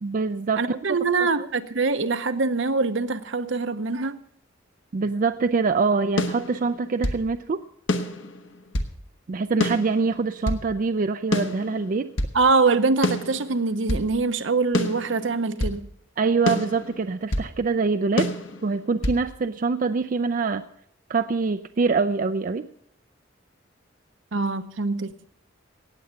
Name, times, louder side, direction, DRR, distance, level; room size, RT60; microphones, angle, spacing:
voice 1, 0.0-0.8 4.9-7.6 9.3-12.1 16.2-18.3 18.6-20.6 21.1-22.7, right 4 dB, 45° right, 9 dB, 0.4 m, -24 dB
voice 2, 0.6-4.2 12.3-15.9 24.3-25.1, right 4 dB, 70° right, 11 dB, 0.8 m, -24 dB
sound 1, 6.2-7.3 7.9-9.0 9.6-10.7 11.3-12.4 13.0-14.1 14.7-15.8 16.5-17.5 18.2-19.2, left 1 dB, 70° left, 1.2 m, -27 dB
18.0 x 7.8 x 5.8 m, 0.67 s
head